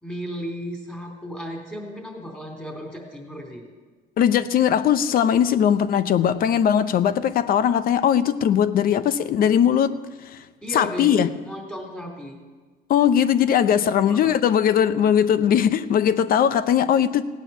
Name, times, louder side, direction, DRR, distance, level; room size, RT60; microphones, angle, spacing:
voice 1, 0.0-3.6 10.6-12.4 14.0-14.3, equal, 10° left, 0 dB, 3.7 m, -35 dB
voice 2, 4.2-9.9 10.2-10.4 10.7-11.3 12.9-17.2, left 9 dB, 60° left, 14 dB, 0.8 m, -19 dB
17.0 x 9.1 x 7.1 m, 1.4 s
cardioid pair, 110°, 17 cm